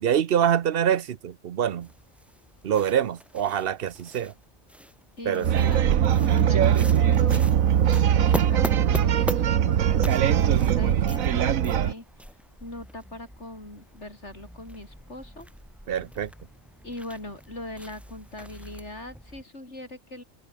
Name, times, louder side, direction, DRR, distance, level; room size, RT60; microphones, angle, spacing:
voice 1, 0.0-1.9 2.6-4.3 5.3-5.5 15.9-16.3, right 9 dB, 50° right, 0.8 m, -25 dB
sound 1, 1.8-19.4, equal, ahead, 2.4 m, -41 dB
voice 2, 5.2-7.5 8.2-12.1 12.6-15.5 16.8-20.2, left 1 dB, 55° left, 7.2 m, -40 dB
sound 2, 5.4-11.9, right 9 dB, 80° right, 1.4 m, -21 dB
omnidirectional pair, 1.4 m